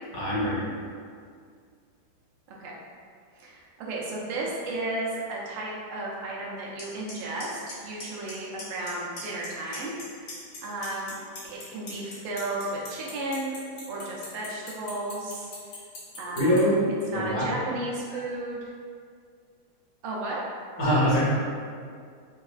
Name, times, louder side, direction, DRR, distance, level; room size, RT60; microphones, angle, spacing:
voice 1, 0.1-0.6 16.4-16.9 17.1-17.5 20.8-21.2, equal, 65° left, -8 dB, 1.4 m, -23 dB
voice 2, 3.4-11.2 11.4-13.5 13.9-15.5 16.2-16.6 17.1-18.7 20.0-20.4, right 2 dB, 80° right, -4 dB, 1.5 m, -34 dB
Clock, 6.8-6.9 7.1-7.4 7.7-8.3 8.6-8.9 9.2-10.0 10.3-16.6, left 4 dB, 90° left, 1.9 m, -40 dB
4.4 x 2.4 x 2.3 m, 2.1 s
omnidirectional pair, 2.3 m